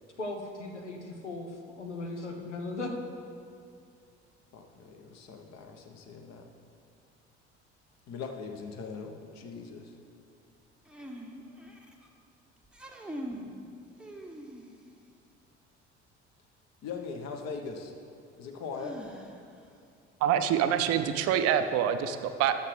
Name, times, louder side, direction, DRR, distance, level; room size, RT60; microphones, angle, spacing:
voice 1, 0.2-1.5 1.8-2.9, left 2 dB, 90° left, 3 dB, 0.7 m, -37 dB
voice 2, 4.5-6.5 8.1-9.9 16.8-17.9 18.4-19.0, left 5 dB, 50° left, 4 dB, 1.0 m, -40 dB
sound 1, 10.9-12.1 12.6-13.5 14.0-14.9 16.9-17.0 18.8-19.6, equal, 5° right, 0.8 m, -43 dB
voice 3, 20.2-22.5, right 9 dB, 45° right, 9 dB, 0.5 m, -26 dB
12.5 x 6.6 x 3.3 m, 2.4 s
figure-of-eight pair, 55°, 34 cm